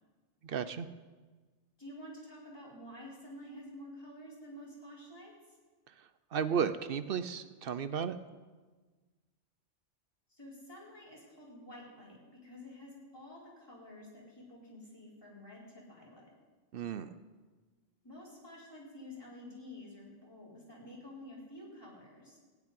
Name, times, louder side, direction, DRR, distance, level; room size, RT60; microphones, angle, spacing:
voice 1, 0.4-0.9 6.3-8.2 16.7-17.2, right 7 dB, 60° right, 12 dB, 0.8 m, -34 dB
voice 2, 1.8-5.6 10.3-16.3 18.0-22.4, left 1 dB, 20° left, -6 dB, 4.2 m, -50 dB
15.5 x 5.9 x 9.8 m, 1.4 s
omnidirectional pair, 1.2 m